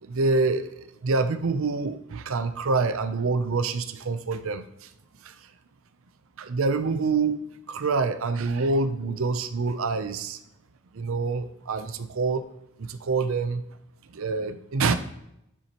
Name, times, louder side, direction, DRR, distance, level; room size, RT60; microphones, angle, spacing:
voice 1, 0.0-4.9 5.2-5.3 6.4-7.4 7.7-10.4 10.9-12.4 12.8-13.6 14.1-14.9, right 4 dB, 65° right, 10 dB, 0.5 m, -26 dB
9.7 x 7.0 x 2.9 m, 0.82 s
head